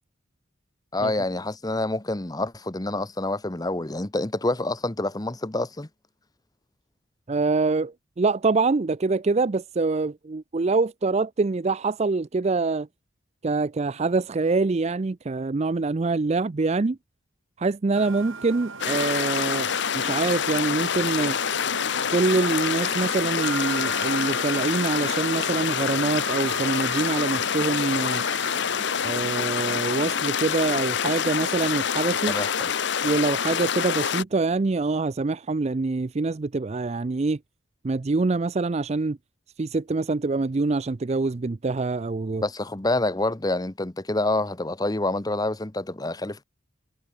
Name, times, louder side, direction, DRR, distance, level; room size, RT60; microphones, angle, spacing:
voice 1, 0.9-5.9 32.3-32.7 42.4-46.4, left 2 dB, 20° left, 1.0 m, -27 dB
voice 2, 7.3-12.9 13.4-17.0 17.6-19.7 19.9-21.4 22.1-28.2 29.0-32.3 33.0-37.4 37.8-39.2 39.6-42.4, right 3 dB, 30° right, 0.4 m, -25 dB
sound 1, 17.9-30.2, right 4 dB, 80° right, 6.9 m, -38 dB
sound 2, 18.8-34.2, left 7 dB, 60° left, 0.8 m, -26 dB
head